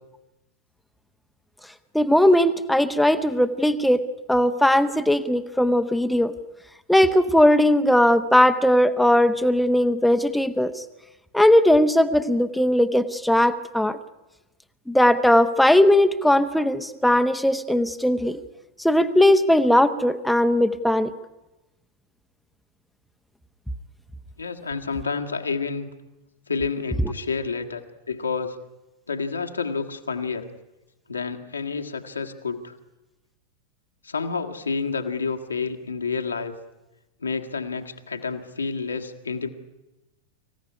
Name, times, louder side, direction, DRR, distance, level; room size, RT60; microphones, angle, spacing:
voice 1, 1.9-4.0 4.3-6.3 6.9-10.8 11.3-14.0 14.9-18.4 18.8-21.1, left 1 dB, ahead, 9 dB, 1.0 m, -19 dB
voice 2, 24.4-25.9 26.5-27.8 28.1-28.6 29.1-30.5 31.1-32.7 34.0-36.6 37.2-39.5, left 5 dB, 75° left, 5 dB, 1.8 m, -29 dB
25.5 x 15.5 x 9.7 m, 1.0 s
figure-of-eight pair, 90°, 0 cm